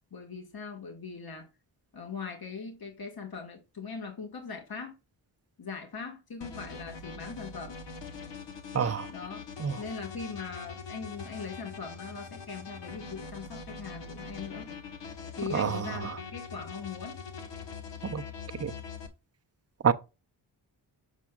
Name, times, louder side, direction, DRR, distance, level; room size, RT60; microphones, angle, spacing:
voice 1, 0.1-1.5 1.9-4.9 5.6-7.8 9.1-9.4 9.7-14.7 15.3-17.2, left 5 dB, 55° left, 1.8 m, -40 dB
sound 1, 6.4-19.1, left 5 dB, 75° left, 1.2 m, -43 dB
voice 2, 8.7-9.1 9.6-9.8 15.5-15.8 18.1-18.2 18.6-18.7 19.8-19.9, right 7 dB, 35° right, 0.6 m, -26 dB
7.1 x 5.6 x 2.4 m
cardioid pair, 70°, 44 cm